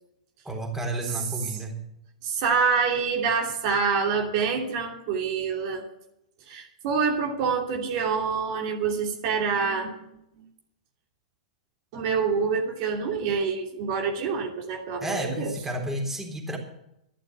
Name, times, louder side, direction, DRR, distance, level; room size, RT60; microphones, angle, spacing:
voice 1, 0.5-1.8 15.0-16.6, right 1 dB, 10° right, 2 dB, 3.6 m, -31 dB
voice 2, 2.2-5.9 6.5-9.9 11.9-15.5, right 5 dB, 55° right, 2 dB, 2.9 m, -26 dB
11.5 x 11.5 x 8.0 m, 0.80 s
hypercardioid pair, 115°, 4 cm